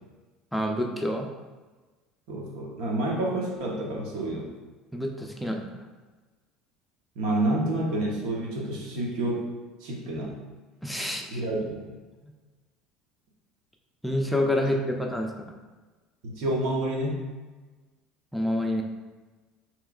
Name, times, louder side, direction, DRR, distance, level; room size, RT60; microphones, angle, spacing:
voice 1, 0.5-1.3 4.9-5.8 10.8-11.4 14.0-15.3 18.3-18.8, left 1 dB, ahead, 1 dB, 0.4 m, -27 dB
voice 2, 2.3-4.5 7.2-9.5 9.8-10.3 11.0-12.0 14.6-14.7 16.2-17.2, right 1 dB, 75° right, -1 dB, 0.8 m, -29 dB
4.6 x 3.0 x 2.4 m, 1.3 s
supercardioid pair, 100°, 0 cm